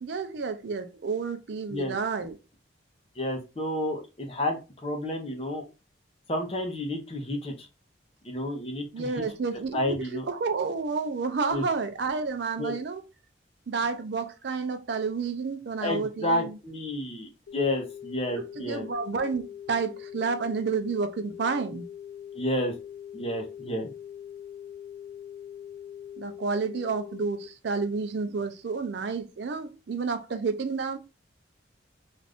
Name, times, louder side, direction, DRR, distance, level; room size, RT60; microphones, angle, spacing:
voice 1, 0.0-2.4 8.9-13.0 13.7-16.5 18.3-21.9 26.2-31.0, right 4 dB, 65° right, 0.4 m, -30 dB
voice 2, 3.2-5.7 6.3-7.7 8.2-9.2 9.7-10.2 11.5-11.6 12.6-12.7 15.8-18.9 22.3-22.7 23.1-23.9, left 1 dB, 30° left, 0.6 m, -30 dB
sound 1, 17.5-27.5, left 9 dB, 85° left, 0.4 m, -42 dB
2.5 x 2.4 x 3.4 m
head